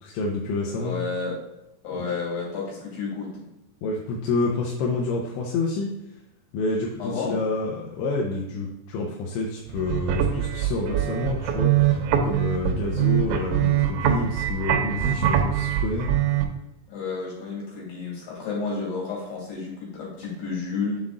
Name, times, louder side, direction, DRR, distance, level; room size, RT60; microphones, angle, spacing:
voice 1, 0.0-1.0 3.8-5.9 6.5-16.1, left 3 dB, 85° left, -2 dB, 3.0 m, -28 dB
voice 2, 0.8-1.4 1.8-3.4 7.0-7.4 16.9-21.0, left 4 dB, 65° left, -4 dB, 4.4 m, -31 dB
sound 1, 9.7-16.4, right 10 dB, 90° right, 3.0 m, -23 dB
7.5 x 4.0 x 3.7 m, 0.93 s
omnidirectional pair, 5.0 m